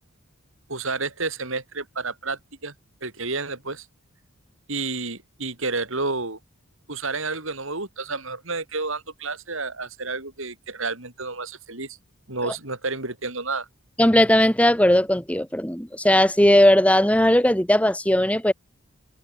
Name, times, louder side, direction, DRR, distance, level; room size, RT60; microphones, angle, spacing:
voice 1, 0.7-2.7 3.0-3.9 4.7-6.4 6.9-12.0 12.3-13.7, right 3 dB, 65° right, 4.6 m, -30 dB
voice 2, 14.0-18.5, left 1 dB, 5° left, 3.2 m, -18 dB
head